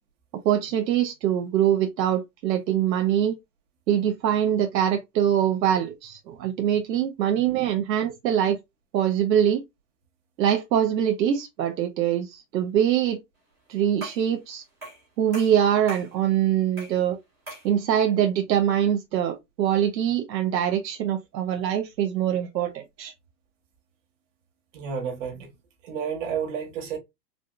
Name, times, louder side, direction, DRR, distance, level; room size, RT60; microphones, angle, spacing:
voice 1, 0.4-3.4 3.9-8.6 8.9-9.6 10.4-13.2 13.7-14.6 15.2-17.2 17.6-23.1, right 10 dB, 80° right, 0.9 m, -23 dB
sound 1, 14.0-14.3 14.8-15.1 15.3-16.1 16.8-17.0 17.5-17.7, right 2 dB, 5° right, 0.5 m, -40 dB
voice 2, 24.7-25.5 25.8-27.0, right 7 dB, 45° right, 1.7 m, -31 dB
4.9 x 2.5 x 2.5 m
supercardioid pair, 170°, 50 cm